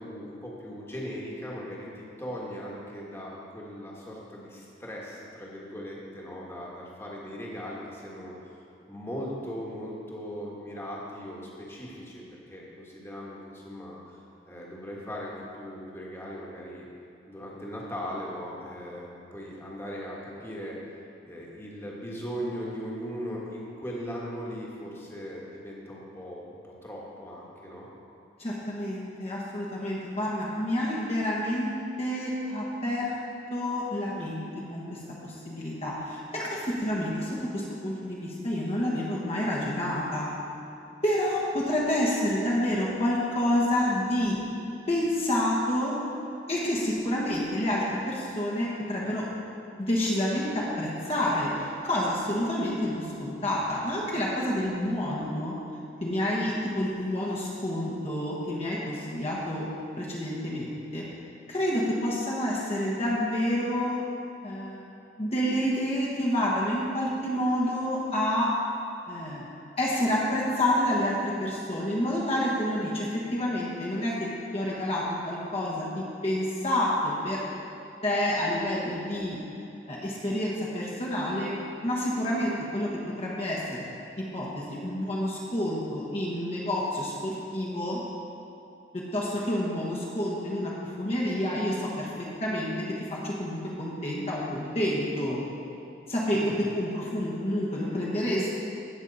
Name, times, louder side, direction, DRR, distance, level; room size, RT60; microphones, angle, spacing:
voice 1, 0.0-8.5 8.9-12.2 12.5-14.0 14.4-16.9 17.3-20.8 21.2-27.9 96.3-96.7, equal, 15° left, -4 dB, 1.5 m, -38 dB
voice 2, 28.4-33.2 33.5-40.3 41.0-44.4 44.9-46.0 46.5-49.2 49.8-55.5 56.0-59.7 60.0-61.0 61.5-64.0 64.4-68.5 69.1-77.4 78.0-79.4 79.9-81.5 81.8-82.9 83.2-83.9 84.2-88.0 88.9-92.7 93.0-95.4 96.1-98.5, left 1 dB, 35° left, -5 dB, 1.3 m, -29 dB
16.0 x 6.3 x 4.1 m, 2.9 s
head